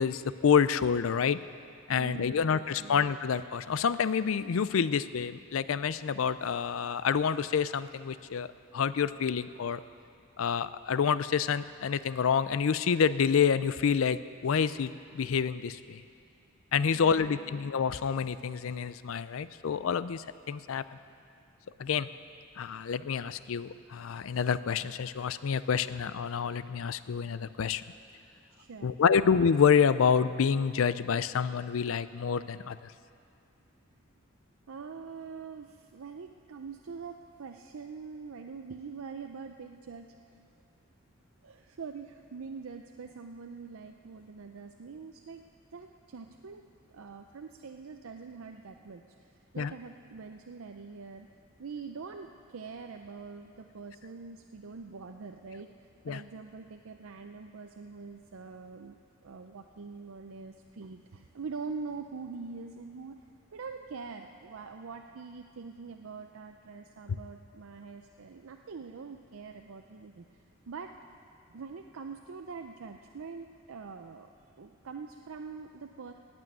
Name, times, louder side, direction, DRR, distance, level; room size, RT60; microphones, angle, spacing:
voice 1, 0.0-1.4 1.9-8.5 8.7-9.8 10.4-16.0 16.7-20.8 21.8-22.1 22.6-27.8 28.8-32.9 49.6-49.7 56.1-56.2, left 6 dB, 75° left, 15 dB, 0.4 m, -28 dB
voice 2, 2.0-3.0 16.9-17.7 28.5-29.3 34.7-40.4 41.4-45.4 45.7-51.3 51.6-63.2 63.5-70.2 70.7-70.9 71.5-74.3 74.6-76.1, right 5 dB, 90° right, 5 dB, 0.5 m, -44 dB
18.0 x 6.3 x 9.1 m, 2.5 s
head